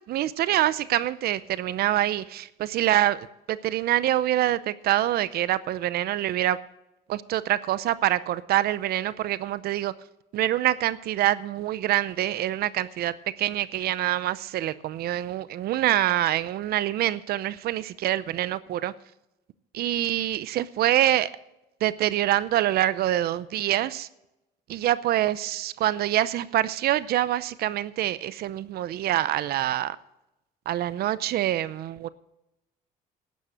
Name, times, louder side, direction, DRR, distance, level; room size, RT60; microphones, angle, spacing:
voice 1, 0.1-6.6 7.1-9.9 10.3-13.1 13.4-18.9 19.7-21.3 21.8-24.1 24.7-30.0 30.7-32.1, right 13 dB, 70° right, 0.6 m, -25 dB
12.0 x 9.4 x 6.4 m
cardioid pair, 110°, 17 cm